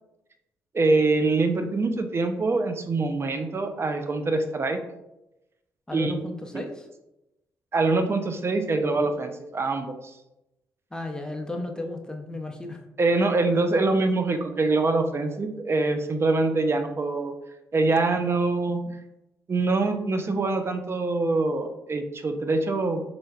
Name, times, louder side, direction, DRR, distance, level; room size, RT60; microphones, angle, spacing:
voice 1, 0.7-4.8 5.9-6.1 6.5-6.6 7.7-9.9 13.0-17.3 17.7-18.8 19.5-23.0, right 3 dB, 40° right, 7 dB, 0.5 m, -24 dB
voice 2, 5.9-6.9 10.9-12.8, left 2 dB, 10° left, 3 dB, 0.7 m, -34 dB
3.8 x 3.2 x 2.4 m, 0.93 s
supercardioid pair, 50°, 7 cm